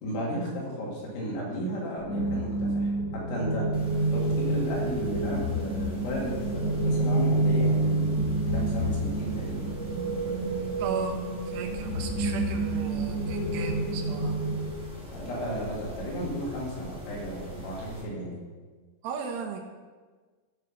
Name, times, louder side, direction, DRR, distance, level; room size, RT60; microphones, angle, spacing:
voice 1, 0.0-3.7 4.1-9.7 15.1-18.3, equal, 75° left, -5 dB, 4.9 m, -34 dB
sound 1, 2.0-14.7, right 2 dB, 50° left, 2.5 m, -28 dB
Mechanisms, 3.7-18.0, right 1 dB, ahead, 1.3 m, -43 dB
voice 2, 10.8-11.2 11.5-14.4 19.0-19.6, right 6 dB, 90° right, 3 dB, 3.4 m, -36 dB
14.0 x 6.5 x 4.2 m, 1.4 s
omnidirectional pair, 5.4 m